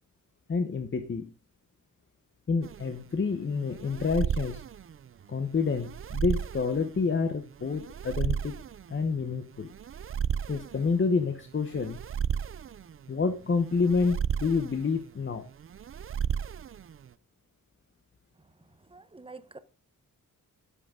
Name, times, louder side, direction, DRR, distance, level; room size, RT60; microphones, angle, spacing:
voice 1, 0.5-1.3 2.5-4.6 5.3-8.5 8.9-9.7 10.5-12.0 13.1-15.5, left 4 dB, 35° left, 0.9 m, -28 dB
sound 1, 2.6-17.1, right 8 dB, 40° right, 0.4 m, -35 dB
voice 2, 18.8-19.6, right 3 dB, 15° right, 0.8 m, -47 dB
11.0 x 7.8 x 3.6 m
wide cardioid pair, 180°, 34 cm